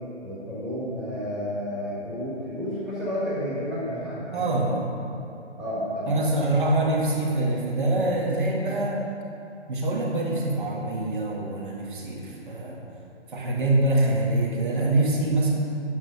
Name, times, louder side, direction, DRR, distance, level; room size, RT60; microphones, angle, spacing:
voice 1, 0.2-4.5 5.6-6.2, equal, ahead, -11 dB, 1.5 m, -31 dB
voice 2, 4.3-4.8 6.1-9.0 9.7-12.8 13.3-15.5, right 2 dB, 45° right, -2 dB, 1.7 m, -24 dB
9.6 x 6.7 x 5.6 m, 2.6 s
hypercardioid pair, 160°, 35 cm